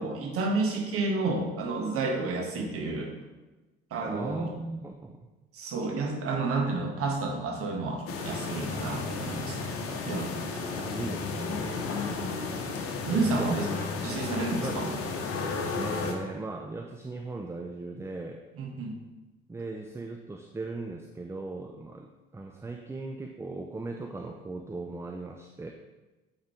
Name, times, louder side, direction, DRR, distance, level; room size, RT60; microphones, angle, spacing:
voice 1, 0.0-3.1 3.9-4.5 5.5-9.7 10.1-10.7 13.0-13.7 14.0-14.9 18.6-19.0, right 3 dB, 50° right, 1 dB, 1.4 m, -30 dB
voice 2, 3.9-5.3 10.7-11.9 13.4-13.6 14.6-14.8 15.6-18.4 19.5-22.1 22.3-25.7, right 3 dB, 10° right, 4 dB, 0.5 m, -38 dB
sound 1, 8.1-16.1, left 4 dB, 50° left, 0.9 m, -33 dB
8.7 x 3.9 x 3.4 m, 1.1 s
figure-of-eight pair, 50°, 30 cm